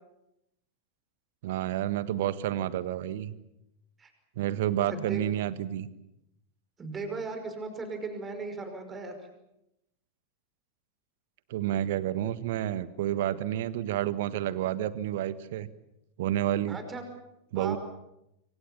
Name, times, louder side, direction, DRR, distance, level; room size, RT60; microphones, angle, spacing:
voice 1, 1.4-3.3 4.4-5.9 11.5-15.7 16.2-16.8 17.5-17.8, right 12 dB, 55° right, 15 dB, 1.4 m, -30 dB
voice 2, 4.9-5.2 6.8-9.1 16.7-17.0 17.6-17.8, right 3 dB, 20° right, 6 dB, 5.5 m, -37 dB
26.0 x 25.5 x 7.2 m, 0.86 s
figure-of-eight pair, 90°, 0 cm